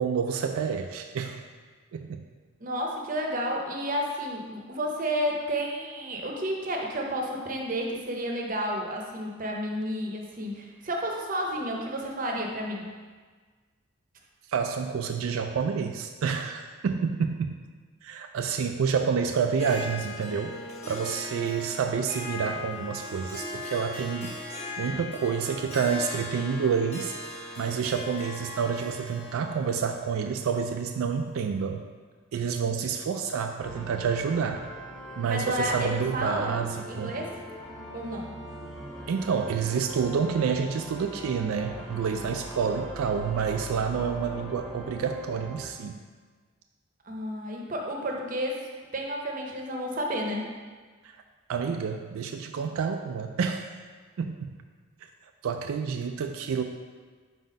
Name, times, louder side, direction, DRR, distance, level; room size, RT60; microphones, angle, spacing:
voice 1, 0.0-1.4 1.9-2.3 14.5-17.6 18.0-20.6 20.9-24.3 24.8-27.1 27.6-31.8 32.3-34.7 35.2-37.1 39.1-46.0 51.5-53.7 54.2-54.6 55.4-56.6, right 6 dB, 85° right, 5 dB, 0.4 m, -28 dB
voice 2, 2.6-12.9 35.3-36.6 36.9-37.3 37.9-38.3 47.0-48.6 48.9-50.5, equal, 40° right, 0 dB, 0.7 m, -31 dB
Harp, 19.5-31.4, left 2 dB, 30° left, 1.0 m, -39 dB
sound 1, 33.6-45.7, equal, 5° left, 1.0 m, -41 dB
4.5 x 4.1 x 5.1 m, 1.5 s
head